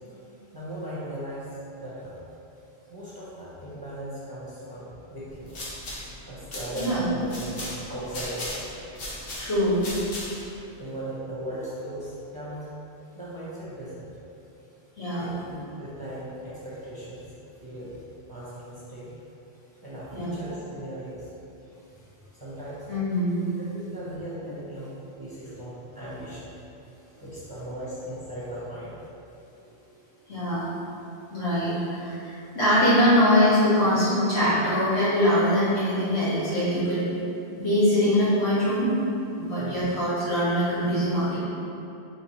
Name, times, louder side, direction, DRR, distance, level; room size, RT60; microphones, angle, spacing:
voice 1, 0.5-2.3 2.9-5.5 6.2-8.7 10.8-12.7 13.1-14.1 15.2-17.3 17.6-18.0 18.3-19.1 19.8-21.3 22.3-22.9 23.7-26.5 27.2-28.9 39.6-39.8, right 1 dB, 25° right, -10 dB, 0.7 m, -37 dB
sound 1, 5.3-10.6, left 1 dB, 65° left, 1.0 m, -37 dB
voice 2, 9.4-9.9 15.0-15.3 20.1-20.3 22.9-23.5 30.3-30.7 31.3-37.0 37.6-38.9 39.4-41.4, equal, 85° left, -13 dB, 1.9 m, -23 dB
4.1 x 3.1 x 3.0 m, 2.8 s
omnidirectional pair, 1.1 m